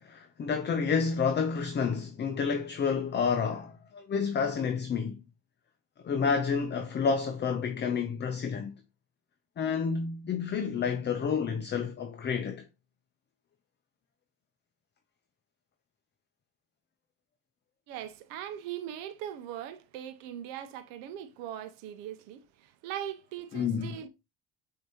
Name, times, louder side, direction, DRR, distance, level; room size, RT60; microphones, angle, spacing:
voice 1, 0.0-5.2 6.0-8.7 9.6-12.6 23.5-24.0, left 6 dB, 30° left, 0.6 m, -29 dB
voice 2, 17.9-24.1, right 11 dB, 85° right, 0.7 m, -40 dB
6.0 x 2.8 x 2.8 m
supercardioid pair, 75°, 36 cm